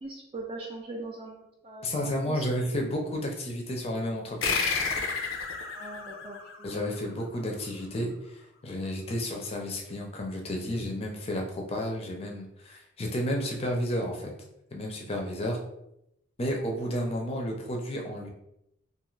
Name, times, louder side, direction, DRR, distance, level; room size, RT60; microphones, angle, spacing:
voice 1, 0.0-2.5 5.7-6.4, right 2 dB, 30° right, -1 dB, 0.4 m, -40 dB
voice 2, 1.8-4.7 6.6-14.3 14.7-15.6 16.4-18.3, equal, 30° left, 1 dB, 0.5 m, -32 dB
sound 1, 4.4-7.4, left 5 dB, 80° left, 0.5 m, -31 dB
2.5 x 2.4 x 3.1 m, 0.82 s
head